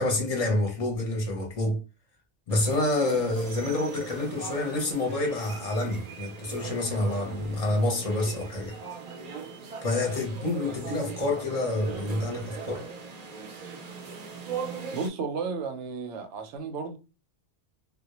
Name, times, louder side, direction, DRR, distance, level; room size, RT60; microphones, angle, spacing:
voice 1, 0.0-1.8 2.5-8.8 9.8-12.8, left 2 dB, 40° left, 0.6 m, -28 dB
sound 1, 2.5-15.1, right 5 dB, 55° right, 0.4 m, -40 dB
voice 2, 14.9-17.0, right 5 dB, 85° right, 0.9 m, -33 dB
2.2 x 2.0 x 2.8 m
omnidirectional pair, 1.2 m